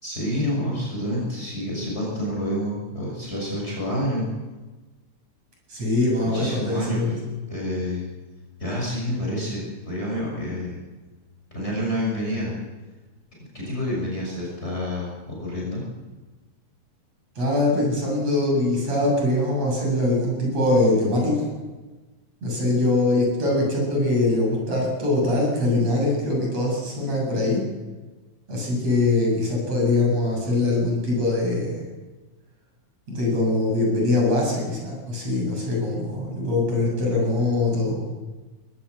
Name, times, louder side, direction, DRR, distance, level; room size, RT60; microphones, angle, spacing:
voice 1, 0.0-4.3 6.2-7.2 7.5-8.0 8.6-10.8 11.5-12.5 13.5-15.8, equal, 20° left, -3 dB, 6.6 m, -28 dB
voice 2, 5.7-7.2 17.4-21.5 22.4-27.7 28.5-31.8 33.1-38.1, left 2 dB, 60° right, -1 dB, 8.8 m, -22 dB
21.5 x 17.5 x 8.1 m, 1.2 s
omnidirectional pair, 3.3 m